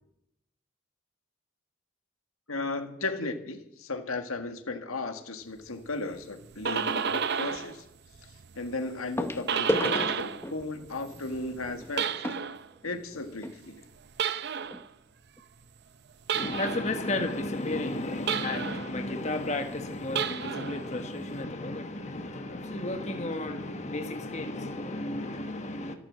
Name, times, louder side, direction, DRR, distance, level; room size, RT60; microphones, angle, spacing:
voice 1, 2.5-7.9 8.2-12.2 12.8-13.8, left 3 dB, 85° left, 1.8 m, -35 dB
sound 1, 5.6-5.9 7.6-7.7 9.2-13.6 14.4-14.5 14.7-14.8 15.4-15.5, left 1 dB, 10° left, 0.9 m, -35 dB
sound 2, 6.3-7.8 8.1-10.5 10.8-12.7 14.1-14.9 16.3-16.9 18.3-18.9 20.0-20.8, right 7 dB, 50° right, 0.6 m, -31 dB
voice 2, 16.3-25.9, left 2 dB, 35° left, 1.3 m, -33 dB
14.0 x 11.5 x 7.6 m
head